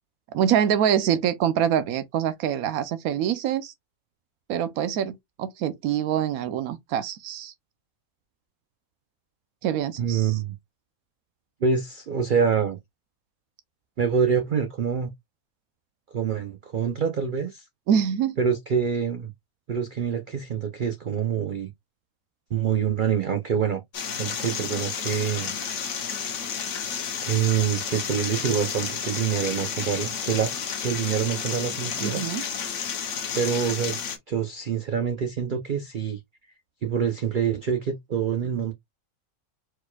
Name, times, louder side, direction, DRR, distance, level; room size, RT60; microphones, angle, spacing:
voice 1, 0.3-3.7 4.5-7.5 9.6-10.4 17.9-18.4 32.0-32.4, right 9 dB, 90° right, 1.1 m, -25 dB
voice 2, 10.0-10.5 11.6-12.8 14.0-15.1 16.1-17.6 18.4-19.3 19.7-21.7 22.5-23.8 24.2-25.5 27.2-30.5 30.8-32.2 33.3-34.0 34.3-36.2 36.8-38.7, right 7 dB, 55° right, 0.5 m, -26 dB
sound 1, 23.9-34.2, left 7 dB, 65° left, 1.2 m, -31 dB
4.5 x 4.2 x 2.2 m
omnidirectional pair, 1.5 m